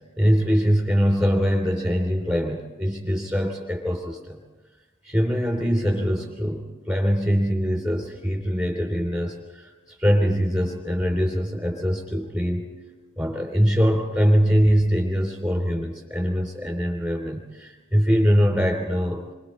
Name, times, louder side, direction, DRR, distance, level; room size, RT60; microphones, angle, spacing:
voice 1, 0.2-4.4 5.0-12.6 13.2-19.2, equal, 15° right, 0 dB, 2.9 m, -23 dB
28.0 x 24.5 x 4.3 m, 1.2 s
head